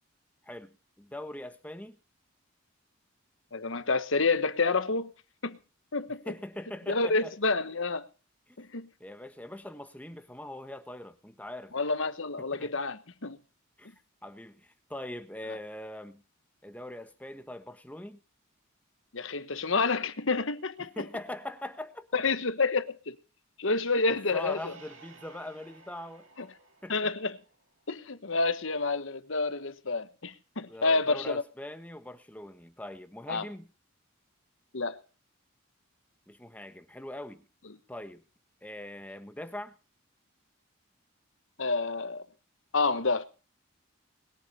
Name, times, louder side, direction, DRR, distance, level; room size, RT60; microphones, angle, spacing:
voice 1, 0.4-2.0 6.3-7.3 8.5-8.6 9.0-11.7 12.4-12.8 13.8-13.9 14.2-16.2 16.6-18.2 20.8-22.1 24.3-26.3 26.8-26.9 30.7-33.7 36.3-37.4 37.9-38.2 38.6-39.7, left 1 dB, 5° left, 1.3 m, -42 dB
voice 2, 3.5-5.1 5.4-5.6 5.9-6.3 6.9-8.0 8.6-8.9 11.7-13.4 19.1-21.1 22.1-23.2 23.6-24.7 26.4-26.5 26.9-27.4 27.9-31.4 33.3-33.4 34.7-35.0 41.6-42.2 42.7-43.3, left 3 dB, 65° left, 1.2 m, -29 dB
sound 1, 24.4-28.0, right 4 dB, 65° right, 3.1 m, -56 dB
21.0 x 8.2 x 5.6 m
head